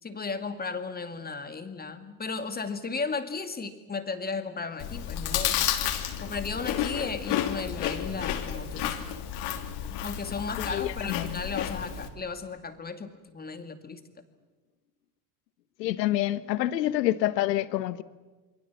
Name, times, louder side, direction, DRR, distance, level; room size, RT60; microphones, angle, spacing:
voice 1, 0.0-5.7 6.2-8.9 10.0-14.0, left 4 dB, 20° left, 2.4 m, -35 dB
Chewing mastication, 4.8-12.1, left 10 dB, 60° left, 3.2 m, -31 dB
voice 2, 10.6-11.4 15.8-18.0, left 14 dB, 85° left, 1.3 m, -27 dB
28.0 x 23.5 x 7.4 m
hypercardioid pair, 95°, 48 cm